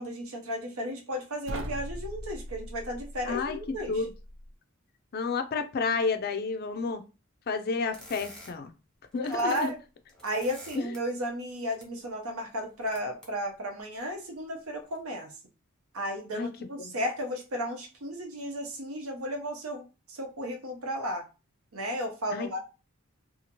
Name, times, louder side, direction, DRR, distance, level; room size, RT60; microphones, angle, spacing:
voice 1, 0.0-3.9 9.2-9.8 10.2-15.3 15.9-21.2 21.7-22.6, equal, 75° right, 0.8 m, -34 dB
sound 1, 1.4-4.5, equal, 60° right, 0.4 m, -40 dB
voice 2, 3.3-3.6 3.9-4.1 5.1-7.0 7.5-8.7 9.1-9.7 10.8-10.9 16.3-16.5 16.8-16.9 22.3-22.5, left 4 dB, 45° left, 0.4 m, -30 dB
sound 2, 7.9-8.5 9.1-9.7 10.0-11.0 11.6-11.8 12.5-13.3 13.9-14.0 14.8-15.0, left 1 dB, 5° left, 0.7 m, -49 dB
2.7 x 2.4 x 2.9 m
head